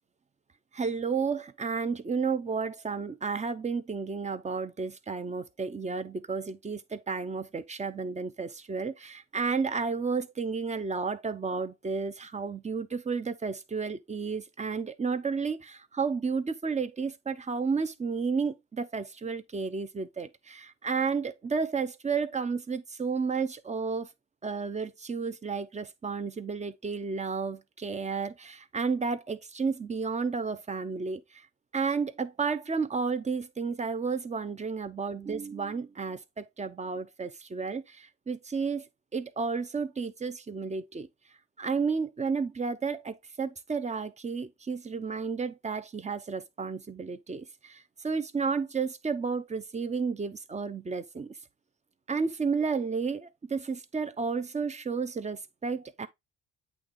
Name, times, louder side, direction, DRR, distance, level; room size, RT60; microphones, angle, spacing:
voice 1, 0.7-24.1 24.4-31.4 31.7-38.9 39.1-41.1 41.6-51.3 52.1-56.1, right 5 dB, 25° right, 0.7 m, -32 dB
8.5 x 3.1 x 3.7 m
cardioid pair, 90°, 30 cm